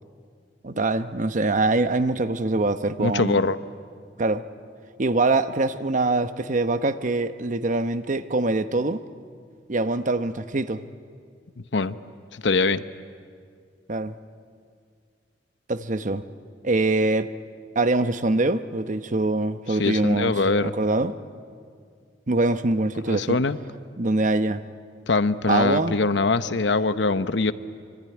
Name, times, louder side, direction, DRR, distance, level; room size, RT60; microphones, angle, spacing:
voice 1, 0.6-3.4 4.2-4.4 5.0-9.0 9.7-10.8 13.9-14.1 15.7-16.2 16.6-17.3 17.7-21.2 22.3-23.4 24.0-24.6 25.5-26.0, right 2 dB, 45° right, 11 dB, 0.9 m, -24 dB
voice 2, 3.0-3.6 11.7-12.0 12.3-12.8 19.7-20.7 23.1-23.6 25.1-27.5, left 3 dB, 80° left, 12 dB, 0.9 m, -23 dB
25.0 x 25.0 x 9.6 m, 2.2 s
head